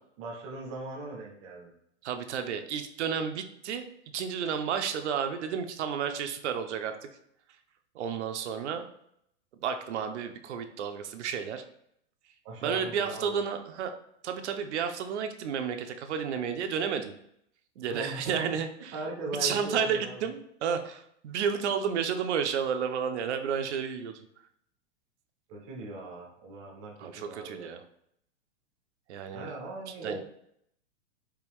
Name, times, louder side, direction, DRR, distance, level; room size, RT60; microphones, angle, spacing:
voice 1, 0.2-1.7 12.4-13.4 17.8-18.6 18.9-20.2 25.5-27.7 29.3-30.2, right 2 dB, 15° right, -2 dB, 0.5 m, -39 dB
voice 2, 2.0-3.9 4.1-7.1 7.9-8.9 9.6-11.6 12.6-13.9 14.2-17.1 17.8-19.0 19.4-24.2 27.0-27.8 29.1-29.5 30.0-30.2, right 7 dB, 70° right, 7 dB, 0.6 m, -31 dB
4.7 x 2.6 x 3.4 m, 0.73 s
supercardioid pair, 165°, 36 cm